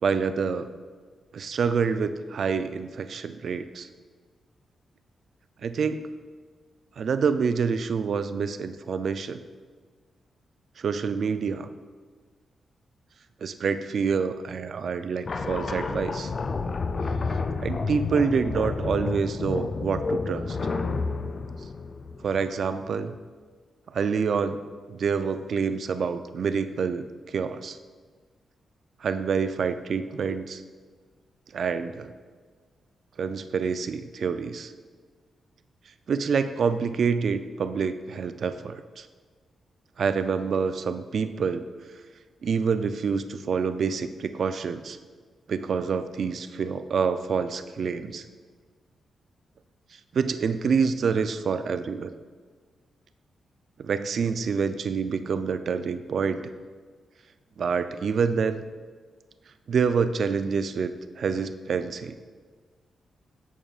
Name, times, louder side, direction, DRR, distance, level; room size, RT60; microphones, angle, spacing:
voice 1, 0.0-0.7 1.3-3.9 5.6-6.1 7.0-9.4 10.8-11.7 13.4-16.3 17.6-20.6 22.2-23.2 23.9-24.6 24.9-27.8 29.0-30.6 31.5-32.1 33.2-34.7 36.1-39.1 40.0-41.6 42.4-45.0 45.5-48.2 49.9-52.1 53.8-56.4 57.6-58.6 59.7-62.2, right 5 dB, 65° right, 10 dB, 0.3 m, -27 dB
sound 1, 15.2-22.7, left 4 dB, 45° left, 0.4 m, -30 dB
8.8 x 6.2 x 2.4 m, 1.5 s
cardioid pair, 75°, 0 cm